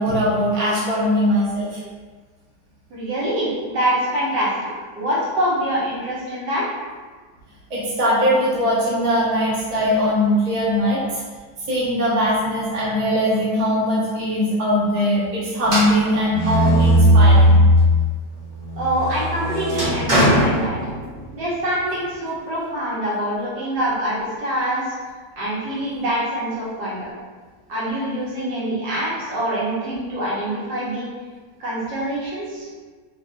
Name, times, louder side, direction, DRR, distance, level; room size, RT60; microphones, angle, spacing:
voice 1, 0.0-1.8 7.7-11.2 11.7-17.6, equal, 30° right, -8 dB, 0.8 m, -20 dB
voice 2, 2.9-6.7 18.8-20.8 21.3-24.9 25.4-27.1 27.7-31.1 31.6-32.7, right 1 dB, 85° right, -9 dB, 1.8 m, -25 dB
sound 1, 15.6-18.1 18.5-21.3, equal, 65° right, 1.5 m, -17 dB
4.1 x 2.6 x 2.4 m, 1.4 s
omnidirectional pair, 1.9 m